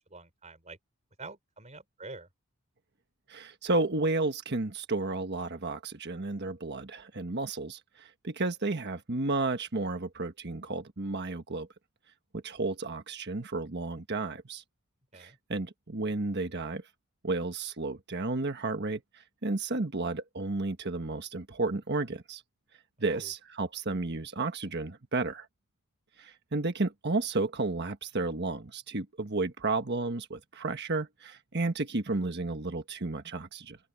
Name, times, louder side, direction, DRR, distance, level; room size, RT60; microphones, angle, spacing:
voice 1, 0.1-0.8 1.2-2.3 15.1-15.4 23.0-23.3, right 3 dB, 30° right, 4.5 m, -46 dB
voice 2, 3.3-11.7 12.4-14.6 15.1-16.8 17.2-19.0 19.4-22.4 23.0-25.5 26.2-33.8, right 3 dB, 50° right, 1.4 m, -32 dB
open air
head